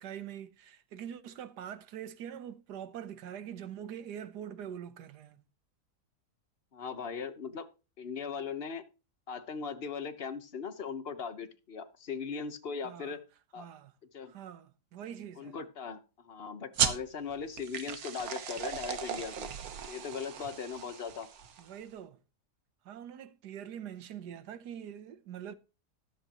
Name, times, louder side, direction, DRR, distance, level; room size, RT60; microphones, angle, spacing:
voice 1, 0.0-5.4 12.8-13.2 13.6-13.9 14.3-15.6 21.6-22.2 22.8-25.6, right 9 dB, 85° right, 1.5 m, -44 dB
voice 2, 6.7-7.7 8.0-8.8 9.3-13.2 13.5-13.7 14.1-14.3 15.4-16.0 16.2-19.5 19.9-21.3, left 6 dB, 40° left, 1.3 m, -39 dB
sound 1, 16.7-21.8, right 7 dB, 65° right, 1.6 m, -36 dB
14.0 x 11.5 x 3.0 m
omnidirectional pair, 1.7 m